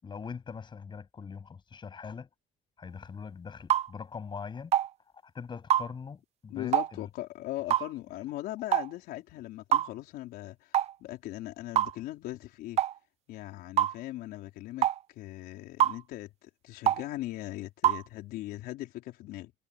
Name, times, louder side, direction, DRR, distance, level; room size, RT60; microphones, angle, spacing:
voice 1, 0.0-2.3 2.8-4.7 5.2-7.1, left 6 dB, 30° left, 7.8 m, -42 dB
sound 1, 3.7-3.9 4.7-4.9 5.7-5.9 6.7-6.9 7.7-7.9 8.7-8.9 9.7-9.9 10.7-10.9 11.8-12.0 12.8-12.9 13.8-13.9 14.8-15.0 15.8-16.0 16.9-17.0 17.8-18.0, right 11 dB, 40° right, 0.4 m, -24 dB
voice 2, 6.5-12.8 13.3-19.5, left 16 dB, 75° left, 4.4 m, -39 dB
cardioid pair, 130°, 16 cm